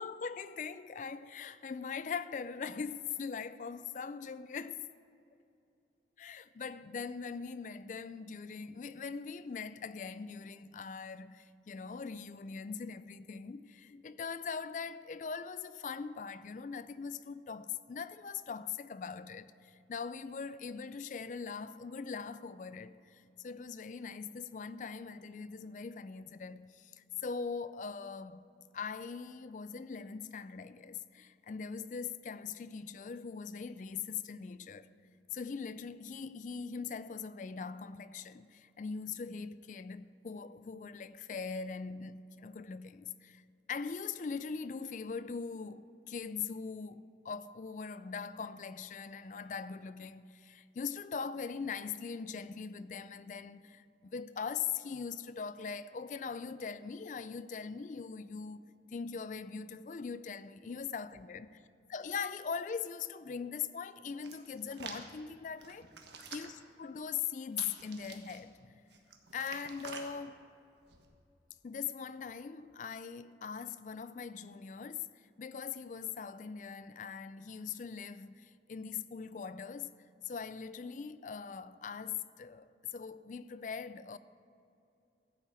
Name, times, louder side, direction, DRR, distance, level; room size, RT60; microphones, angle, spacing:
voice 1, 0.0-4.9 6.2-28.4 28.7-34.9 35.3-43.4 43.7-61.5 61.9-65.9 66.3-66.5 66.8-68.7 69.3-70.4 71.6-79.9 80.2-84.2, left 6 dB, 45° left, 0.3 m, -41 dB
Hands, 64.2-65.0 65.6-66.6 67.5-68.4 68.9-70.1 70.8-71.0, right 6 dB, 75° right, 1.3 m, -48 dB
15.0 x 5.7 x 8.1 m
head